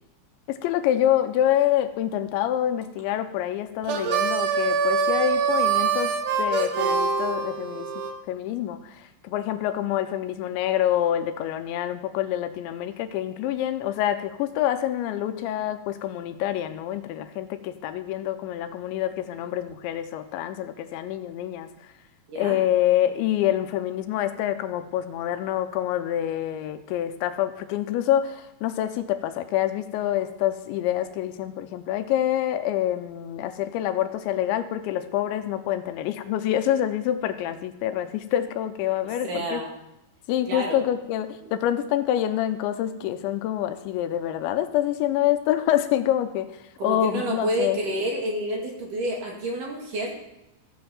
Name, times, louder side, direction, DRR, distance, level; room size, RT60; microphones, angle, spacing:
voice 1, 0.5-7.9 8.3-21.9 22.4-39.6 40.3-47.8, left 11 dB, 80° left, 9 dB, 3.0 m, -26 dB
Harmonica, 3.8-8.1, right 5 dB, 70° right, 2.5 m, -24 dB
voice 2, 22.3-22.6 39.2-39.7 40.5-40.8 46.8-50.1, right 1 dB, 50° right, -1 dB, 3.2 m, -29 dB
15.0 x 7.8 x 7.1 m, 0.91 s
omnidirectional pair, 5.3 m